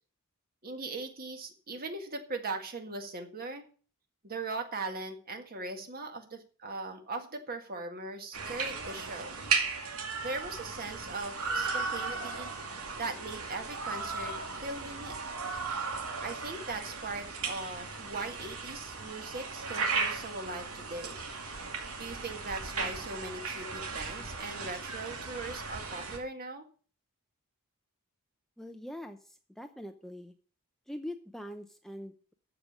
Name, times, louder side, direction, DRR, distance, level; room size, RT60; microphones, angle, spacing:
voice 1, 0.6-3.7 4.2-9.4 10.2-12.5 13.0-14.4 14.6-15.2 15.6-15.7 16.2-21.2 22.0-26.7, right 3 dB, 45° right, 5 dB, 1.8 m, -39 dB
sound 1, 8.3-26.2, right 4 dB, 80° right, 2.2 m, -36 dB
voice 2, 28.6-30.3 30.9-32.3, left 1 dB, ahead, 6 dB, 0.6 m, -43 dB
13.5 x 5.2 x 7.2 m, 0.41 s
head